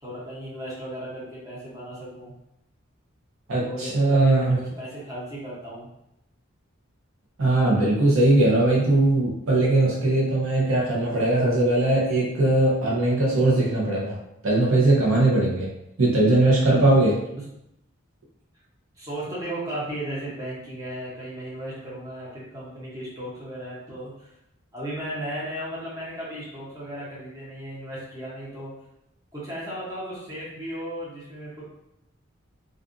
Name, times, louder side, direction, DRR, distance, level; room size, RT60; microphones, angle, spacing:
voice 1, 0.0-2.3 3.6-5.9 17.2-17.4 19.0-24.3 24.7-28.7 29.3-31.6, right 1 dB, 15° right, -8 dB, 0.8 m, -35 dB
voice 2, 3.5-4.6 7.4-14.2 14.4-15.7 16.0-17.2, right 2 dB, 80° right, -4 dB, 0.8 m, -20 dB
2.5 x 2.3 x 2.5 m, 0.84 s
head